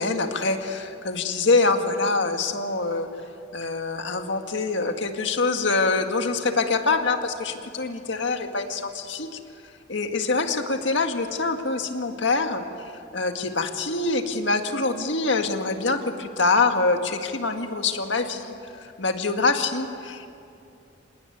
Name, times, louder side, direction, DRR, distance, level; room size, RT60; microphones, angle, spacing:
voice 1, 0.0-3.1 3.5-9.3 9.9-12.6 13.1-20.3, left 3 dB, 65° left, 5 dB, 1.9 m, -25 dB
27.0 x 19.0 x 9.5 m, 2.6 s
head